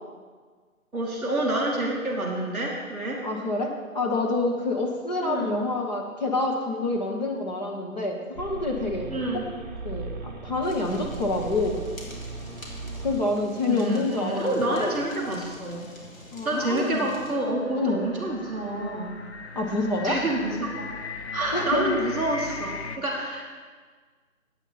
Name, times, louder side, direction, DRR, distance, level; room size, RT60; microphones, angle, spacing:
voice 1, 0.9-3.2 5.2-5.6 9.1-9.5 13.7-15.9 16.4-19.1 20.0-20.9 21.3-23.5, right 1 dB, ahead, -12 dB, 1.1 m, -28 dB
voice 2, 3.2-9.1 9.8-11.8 13.0-15.0 16.3-17.1 17.8-18.0 19.5-20.2 21.5-21.9, left 2 dB, 30° left, -1 dB, 1.2 m, -27 dB
sound 1, 8.4-13.5, right 3 dB, 35° right, 1.0 m, -38 dB
Fire, 10.6-17.3, left 1 dB, 70° left, 3.1 m, -46 dB
sound 2, 17.3-23.0, left 4 dB, 50° left, 0.8 m, -39 dB
14.5 x 9.0 x 4.1 m, 1.5 s
figure-of-eight pair, 150°, 42 cm